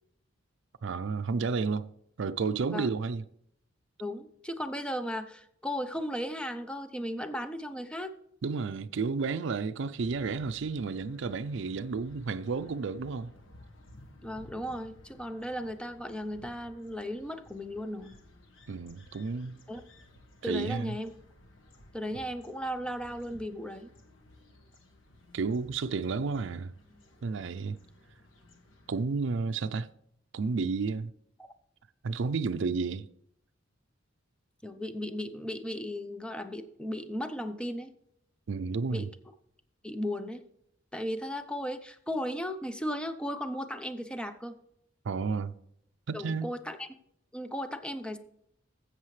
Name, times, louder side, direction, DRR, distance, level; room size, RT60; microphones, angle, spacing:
voice 1, 0.8-1.9 2.2-3.2 8.4-13.3 18.7-19.6 20.4-21.0 25.3-26.7 27.2-27.8 28.9-29.9 30.3-31.1 32.0-33.1 38.5-39.1 45.0-45.5 46.1-46.5, right 4 dB, 65° right, 0.5 m, -31 dB
voice 2, 4.0-8.1 14.2-18.1 19.7-19.8 20.4-21.1 21.9-23.9 31.4-31.5 34.6-37.9 38.9-39.1 39.8-40.4 40.9-44.5 46.1-46.9 47.3-48.2, equal, 5° left, 0.6 m, -36 dB
sound 1, 9.9-29.0, left 1 dB, 85° left, 1.4 m, -56 dB
13.0 x 7.9 x 3.2 m
head